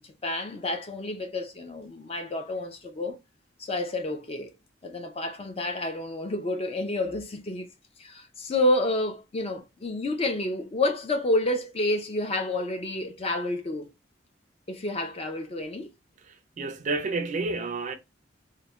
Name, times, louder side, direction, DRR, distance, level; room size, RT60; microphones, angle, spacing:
voice 1, 0.2-3.2 3.6-4.5 4.8-7.7 8.0-13.9 14.7-15.9, left 1 dB, 30° left, 0.4 m, -29 dB
voice 2, 16.3-17.9, right 3 dB, 40° right, 0.4 m, -30 dB
2.9 x 2.1 x 2.3 m
head